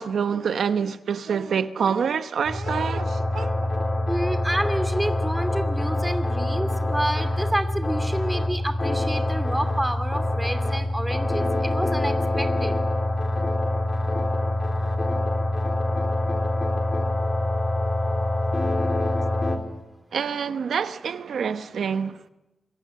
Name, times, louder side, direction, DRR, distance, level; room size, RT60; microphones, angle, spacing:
voice 1, 0.0-3.6 20.1-22.2, right 6 dB, 75° right, 0.9 m, -26 dB
sound 1, 2.5-19.6, left 1 dB, 30° left, 3.8 m, -25 dB
voice 2, 4.1-12.7, right 1 dB, 5° right, 2.7 m, -29 dB
27.0 x 23.5 x 7.6 m
wide cardioid pair, 130°, 0 cm